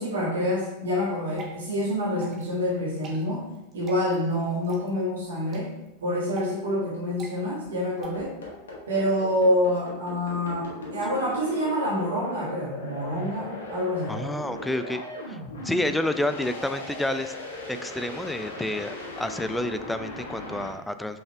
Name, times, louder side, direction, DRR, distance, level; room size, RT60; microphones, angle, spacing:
voice 1, 0.0-5.7 6.0-8.3 8.9-14.2, left 1 dB, 65° right, -6 dB, 1.9 m, -27 dB
Water / Drip, 1.1-8.1, right 5 dB, 30° right, 1.3 m, -46 dB
sound 1, 8.1-20.7, left 2 dB, 65° left, 1.5 m, -38 dB
voice 2, 14.1-15.0 15.3-15.4 15.6-17.3 17.7-21.2, left 1 dB, 5° left, 10 dB, 0.4 m, -29 dB
5.6 x 5.6 x 3.4 m, 0.93 s
figure-of-eight pair, 90°, 0 cm